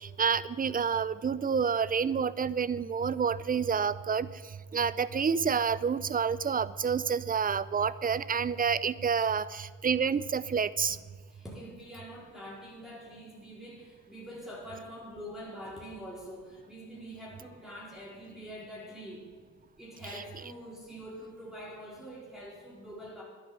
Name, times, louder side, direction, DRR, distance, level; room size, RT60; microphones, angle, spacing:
voice 1, 0.0-4.3 4.7-11.0, right 6 dB, 30° right, 17 dB, 0.6 m, -28 dB
voice 2, 11.3-19.3 19.8-23.2, equal, ahead, -6 dB, 4.2 m, -45 dB
11.0 x 10.5 x 8.1 m, 1.5 s
cardioid pair, 90°, 30 cm